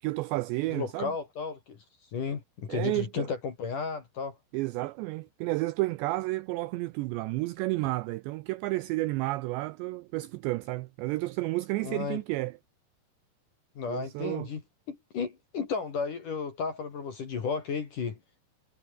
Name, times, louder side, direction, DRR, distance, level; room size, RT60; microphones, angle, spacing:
voice 1, 0.0-1.1 2.7-3.3 4.5-12.6 13.9-14.5, right 20 dB, 90° right, 2.5 m, -31 dB
voice 2, 0.7-1.8 2.1-4.4 11.8-12.2 13.8-14.6 14.9-18.2, left 5 dB, 45° left, 3.9 m, -33 dB
omnidirectional pair, 5.7 m